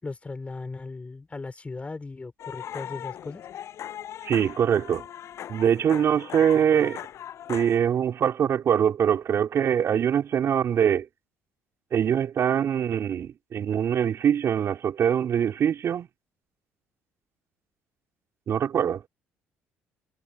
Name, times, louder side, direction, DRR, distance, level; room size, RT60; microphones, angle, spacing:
voice 1, 0.0-3.5, left 3 dB, 25° left, 4.9 m, -37 dB
sound 1, 2.4-7.8, left 10 dB, 60° left, 7.7 m, -39 dB
voice 2, 4.2-5.1 5.5-7.0 7.5-11.1 11.9-16.1 18.5-19.0, right 8 dB, 55° right, 4.2 m, -23 dB
hypercardioid pair, 65°, 5 cm